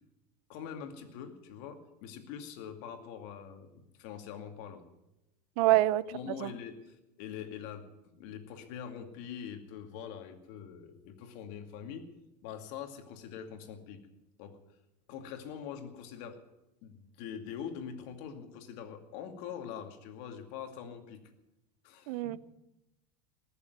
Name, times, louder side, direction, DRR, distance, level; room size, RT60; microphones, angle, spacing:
voice 1, 0.5-4.8 6.1-7.9 8.2-12.1 12.4-14.1 14.4-14.6 15.1-16.4 16.8-21.2 21.8-22.2, left 8 dB, 60° left, 2.4 m, -44 dB
voice 2, 5.6-6.0 6.4-6.5 22.1-22.4, right 15 dB, 65° right, 0.7 m, -25 dB
19.5 x 7.2 x 9.3 m
hypercardioid pair, 110°, 21 cm